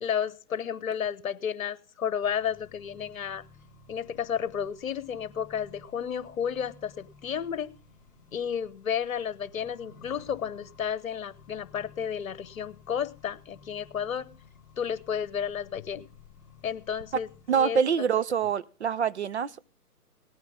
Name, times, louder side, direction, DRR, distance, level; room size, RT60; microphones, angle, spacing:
voice 1, 0.0-3.4 3.9-7.7 8.3-14.3 14.8-16.0 16.6-17.3 17.5-17.8, left 8 dB, 60° left, 1.1 m, -32 dB
Accelerating revving vroom, 2.2-17.6, left 4 dB, 5° left, 2.9 m, -55 dB
voice 2, 17.5-19.6, right 7 dB, 45° right, 0.5 m, -25 dB
18.5 x 9.5 x 3.5 m
figure-of-eight pair, 140°, 47 cm